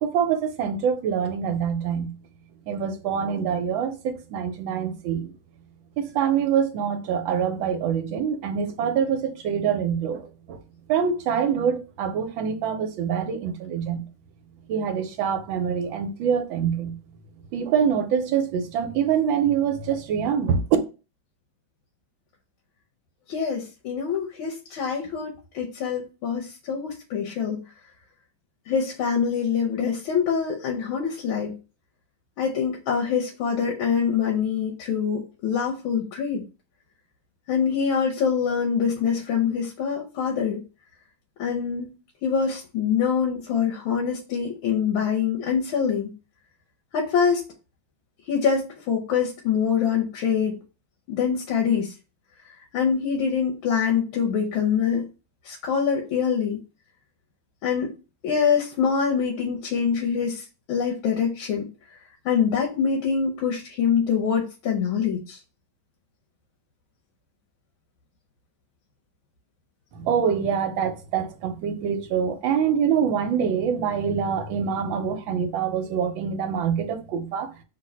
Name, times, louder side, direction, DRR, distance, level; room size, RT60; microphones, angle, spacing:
voice 1, 0.0-2.1 2.7-5.3 6.0-10.6 10.9-14.0 14.7-16.9 17.5-20.6 69.9-77.5, right 7 dB, 80° right, 1.4 m, -25 dB
voice 2, 23.3-27.6 28.7-31.5 32.4-36.4 37.5-40.6 41.4-41.9 42.2-46.1 46.9-47.4 48.3-50.6 51.1-51.9 52.7-55.1 55.4-56.6 57.6-57.9 58.2-60.4 60.7-61.7 62.2-65.4, left 7 dB, 90° left, 1.6 m, -24 dB
3.8 x 2.5 x 4.1 m
omnidirectional pair, 2.2 m